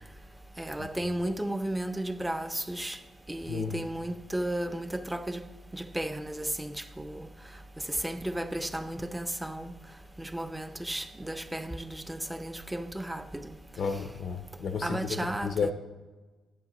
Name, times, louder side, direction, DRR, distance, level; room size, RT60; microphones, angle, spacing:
voice 1, 0.6-3.0 3.3-5.4 5.7-7.3 7.9-9.7 10.2-13.6 14.8-15.7, right 1 dB, 10° right, 0.5 m, -34 dB
voice 2, 3.5-3.8 13.8-15.0 15.4-15.7, left 5 dB, 60° left, 0.5 m, -32 dB
10.5 x 9.0 x 2.9 m
cardioid pair, 90°, 0 cm